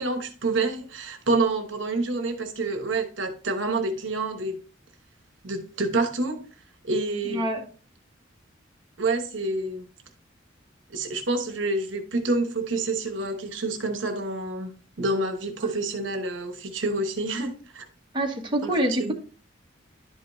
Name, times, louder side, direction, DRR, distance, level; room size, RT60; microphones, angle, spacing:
voice 1, 0.0-4.6 5.4-6.4 6.8-7.4 9.0-9.9 10.9-14.7 15.0-17.9 18.6-18.7 19.0-19.1, right 2 dB, 70° right, 6 dB, 1.1 m, -28 dB
voice 2, 7.2-7.6 18.1-19.1, right 1 dB, 25° right, 0 dB, 1.4 m, -26 dB
11.0 x 5.2 x 2.6 m, 0.37 s
head